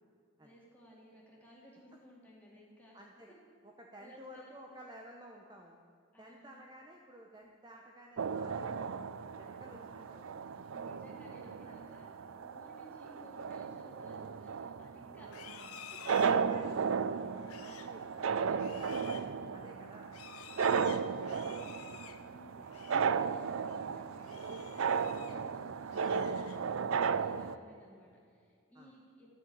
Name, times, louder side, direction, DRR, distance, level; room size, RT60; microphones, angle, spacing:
voice 1, 0.4-3.0 4.0-4.8 6.1-6.6 9.6-9.9 10.7-15.3 17.7-19.3 20.5-21.8 22.2-29.4, equal, 5° left, -4 dB, 2.5 m, -58 dB
voice 2, 2.9-3.3 3.8-5.8 6.2-9.0 9.4-10.8 11.7-11.8 15.1-15.8 16.1-17.2 17.6-19.0 19.5-20.1 28.7-28.9, right 1 dB, 20° right, 0 dB, 0.8 m, -54 dB
sound 1, 8.2-27.6, right 6 dB, 70° right, 0.4 m, -35 dB
Livestock farm animals working animals, 15.2-23.2 23.5-23.8 24.2-25.5 25.8-26.9, left 10 dB, 85° left, 0.6 m, -53 dB
13.0 x 7.0 x 8.6 m, 2.3 s
head